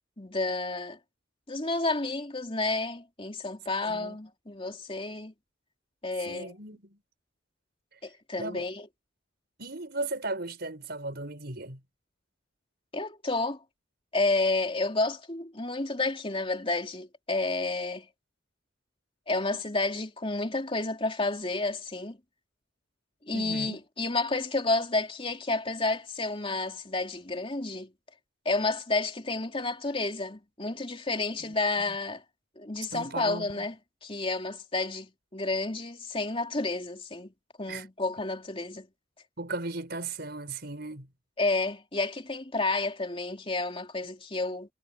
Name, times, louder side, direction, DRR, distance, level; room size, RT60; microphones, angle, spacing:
voice 1, 0.2-1.0 1.5-5.3 6.0-6.5 8.0-8.8 12.9-13.6 14.1-18.1 19.3-22.2 23.3-27.9 28.4-32.2 32.6-33.7 34.0-37.3 37.6-38.9 41.4-44.7, left 2 dB, 30° left, 3.3 m, -30 dB
voice 2, 3.8-4.2 6.2-7.0 8.4-8.7 9.6-11.8 23.3-23.8 31.4-31.5 31.9-32.0 32.9-33.7 37.7-37.9 39.4-41.1, right 2 dB, 55° right, 6.0 m, -37 dB
head